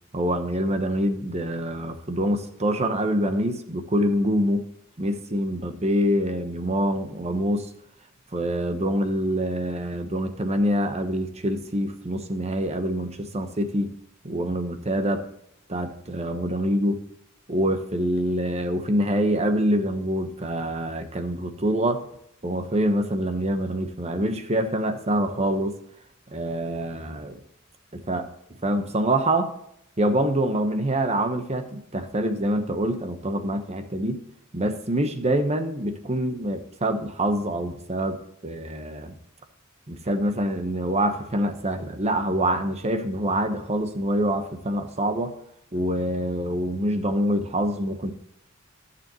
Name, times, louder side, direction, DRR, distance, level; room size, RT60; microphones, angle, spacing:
voice 1, 0.1-4.6 5.0-7.7 8.3-13.9 14.2-15.3 15.7-17.0 17.5-22.0 22.4-25.8 26.3-27.4 27.9-28.3 28.6-29.5 30.0-34.3 34.5-39.2 39.9-45.3 45.7-48.1, right 1 dB, 30° right, 7 dB, 1.1 m, -25 dB
14.5 x 7.1 x 3.1 m, 0.74 s
head